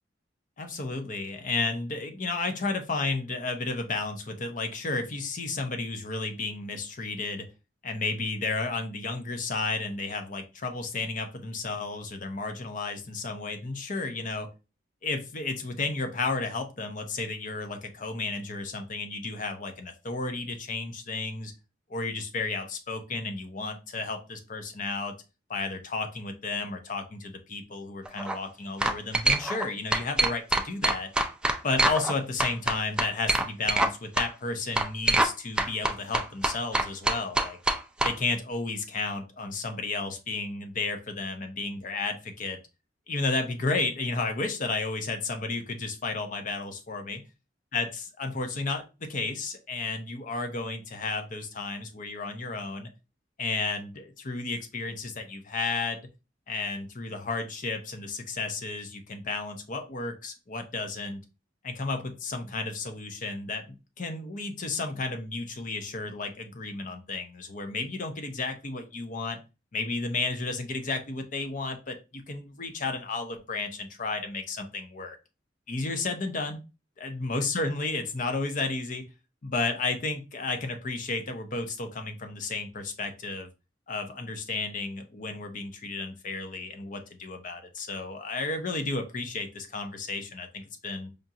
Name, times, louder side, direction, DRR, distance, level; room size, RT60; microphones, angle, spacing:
voice 1, 0.6-7.5 7.8-14.5 15.0-21.5 21.9-25.1 25.5-31.1 31.6-37.6 38.0-42.6 43.1-47.2 47.7-52.9 53.4-56.0 56.5-61.2 61.6-69.4 69.7-75.2 75.7-76.6 77.0-79.1 79.4-83.5 83.9-91.1, left 3 dB, 45° left, 6 dB, 0.7 m, -32 dB
sound 1, 28.0-28.3 28.8-29.7 29.9-32.1 32.4-33.9 34.2-34.3 34.8-35.3 35.6-38.1, right 2 dB, 5° right, 0.3 m, -24 dB
5.0 x 2.4 x 2.8 m, 0.29 s
head